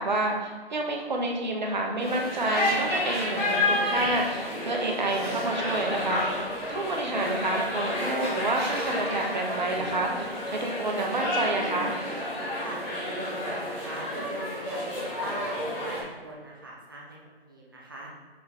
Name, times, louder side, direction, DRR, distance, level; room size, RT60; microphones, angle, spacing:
voice 1, 0.0-6.2 6.7-12.0, right 2 dB, 45° right, 1 dB, 1.1 m, -29 dB
sound 1, 2.0-16.0, left 1 dB, 10° left, 1.0 m, -30 dB
sound 2, 5.9-10.3, right 1 dB, 75° right, 1.4 m, -45 dB
voice 2, 12.6-17.2 17.5-18.1, right 2 dB, 20° right, -3 dB, 0.6 m, -40 dB
6.3 x 4.3 x 3.5 m, 1.5 s
figure-of-eight pair, 150°, 31 cm